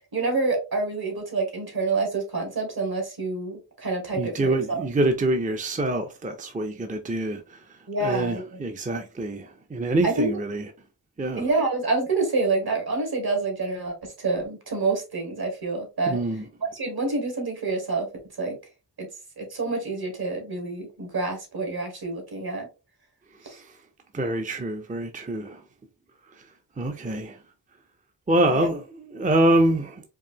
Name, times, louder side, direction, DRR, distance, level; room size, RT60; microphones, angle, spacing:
voice 1, 0.1-4.8 7.9-8.6 10.0-10.3 11.4-16.2 16.7-18.1 18.4-18.6 19.0-19.1 19.4-22.7 23.4-23.6 28.5-28.7, right 3 dB, 60° right, 1.8 m, -27 dB
voice 2, 4.2-7.6 8.0-10.7 11.2-11.4 16.1-16.4 23.6-23.7 24.1-25.6 26.8-27.4 28.3-30.0, right 1 dB, 20° right, 0.5 m, -25 dB
4.6 x 2.7 x 2.8 m
wide cardioid pair, 85°, 42 cm